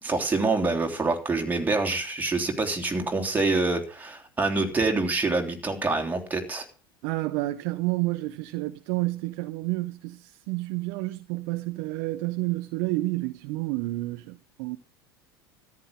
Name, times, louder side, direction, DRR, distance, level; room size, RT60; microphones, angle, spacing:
voice 1, 0.0-6.6, right 3 dB, 15° right, 3.1 m, -26 dB
voice 2, 7.0-14.8, right 19 dB, 55° right, 0.8 m, -30 dB
13.5 x 10.5 x 5.3 m
figure-of-eight pair, 75°, 13 cm